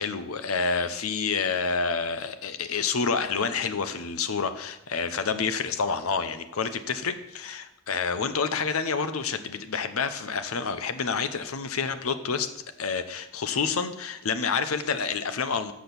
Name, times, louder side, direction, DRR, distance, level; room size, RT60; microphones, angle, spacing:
voice 1, 0.0-12.5 12.8-15.7, left 5 dB, 90° left, 10 dB, 0.8 m, -28 dB
7.8 x 6.2 x 6.9 m, 0.86 s
head